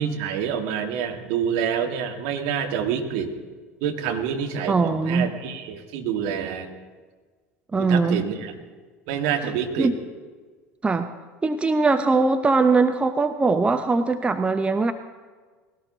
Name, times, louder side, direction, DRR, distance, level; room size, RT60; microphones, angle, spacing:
voice 1, 0.0-3.3 3.8-6.7 7.8-8.6 9.1-9.9, right 8 dB, 55° right, 4 dB, 1.8 m, -27 dB
voice 2, 4.7-5.3 7.7-8.2 9.8-9.9 10.8-11.1 11.4-14.9, right 3 dB, 15° right, 9 dB, 0.8 m, -21 dB
20.0 x 17.0 x 4.0 m, 1.4 s
figure-of-eight pair, 70°, 8 cm